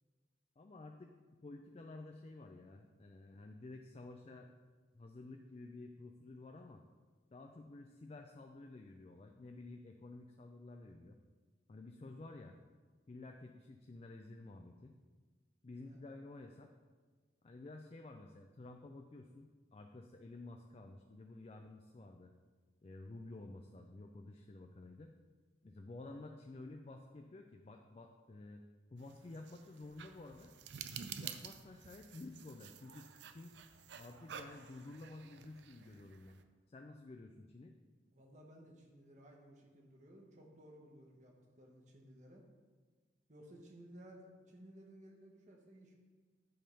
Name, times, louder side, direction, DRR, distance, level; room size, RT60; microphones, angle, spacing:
voice 1, 0.6-1.2 1.4-4.5 4.9-6.8 7.3-11.2 11.7-12.6 13.1-14.9 15.6-16.7 17.4-22.3 22.8-25.1 25.6-28.6 28.9-30.5 31.2-33.5 34.0-36.4 36.7-37.8, left 2 dB, 35° left, 4 dB, 0.4 m, -52 dB
sound 1, 29.0-36.4, right 7 dB, 70° right, 0.5 m, -51 dB
voice 2, 38.1-42.4 43.3-45.9, right 1 dB, 40° right, 0 dB, 1.2 m, -58 dB
10.0 x 3.6 x 5.4 m, 1.5 s
head